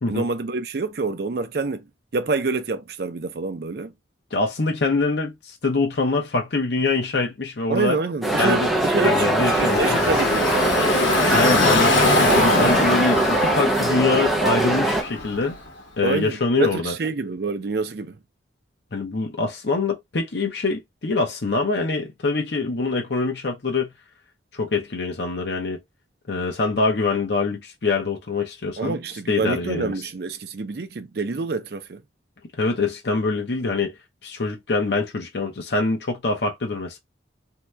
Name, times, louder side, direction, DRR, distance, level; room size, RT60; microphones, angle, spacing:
voice 1, 0.1-1.9 2.1-3.9 7.7-10.9 16.0-18.2 28.8-32.0, right 3 dB, 55° right, 0.5 m, -27 dB
voice 2, 4.3-8.0 8.4-8.7 9.0-10.0 11.3-12.0 12.4-15.6 16.0-16.9 18.9-23.9 24.5-25.8 26.3-29.0 29.3-29.9 32.6-33.9 34.2-37.0, left 3 dB, 65° left, 0.8 m, -24 dB
sound 1, 8.2-15.0, right 1 dB, ahead, 0.5 m, -21 dB
Car passing by / Traffic noise roadway noise, 8.7-15.7, left 2 dB, 85° left, 1.1 m, -23 dB
2.8 x 2.3 x 3.1 m
head